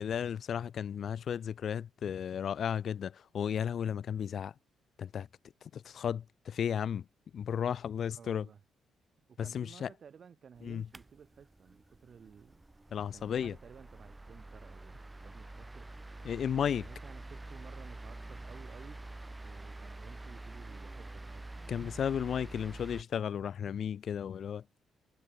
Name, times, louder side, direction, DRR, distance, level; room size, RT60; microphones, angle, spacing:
voice 1, 0.0-4.5 5.0-5.3 5.7-7.0 7.3-8.5 9.4-9.9 10.6-10.9 12.9-13.5 16.2-16.9 21.7-24.6, left 8 dB, 55° left, 0.5 m, -34 dB
voice 2, 8.1-8.6 9.3-12.6 13.1-16.0 16.3-21.8, right 7 dB, 50° right, 6.9 m, -55 dB
sound 1, 10.6-23.0, right 2 dB, 15° right, 1.1 m, -47 dB
cardioid pair, 90°, 0 cm